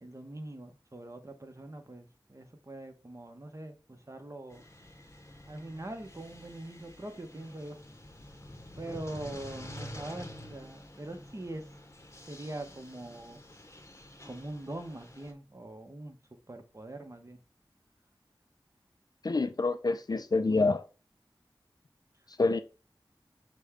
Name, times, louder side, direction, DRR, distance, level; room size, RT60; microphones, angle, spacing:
voice 1, 0.0-4.6 5.5-7.8 8.7-11.7 12.3-13.4 14.2-17.4, right 1 dB, 35° right, 0.8 m, -43 dB
sound 1, 4.5-15.3, left 1 dB, 30° left, 0.8 m, -48 dB
voice 2, 19.2-20.8 22.4-22.6, left 3 dB, 50° left, 0.4 m, -27 dB
6.2 x 2.2 x 3.5 m
wide cardioid pair, 60°, 9 cm